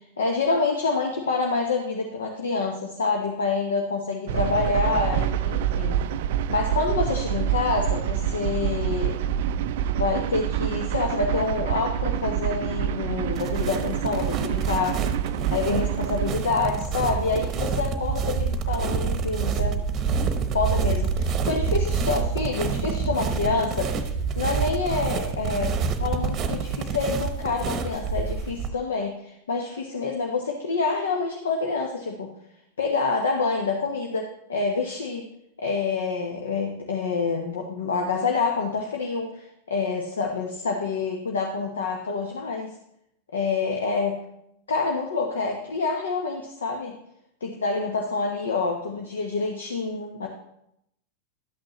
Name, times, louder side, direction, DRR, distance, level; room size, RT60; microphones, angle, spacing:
voice 1, 0.2-6.0 6.5-9.2 9.9-15.0 15.5-19.8 20.5-23.9 24.4-25.7 26.0-32.3 32.8-35.2 35.6-42.8 43.3-44.2 44.7-46.9 47.4-50.3, left 4 dB, 65° left, 2 dB, 1.1 m, -27 dB
sound 1, 4.3-16.4, right 9 dB, 50° right, 0.4 m, -26 dB
sound 2, 13.3-28.7, right 5 dB, 30° right, 0.9 m, -27 dB
12.0 x 8.7 x 3.1 m, 0.79 s
figure-of-eight pair, 90°, 0 cm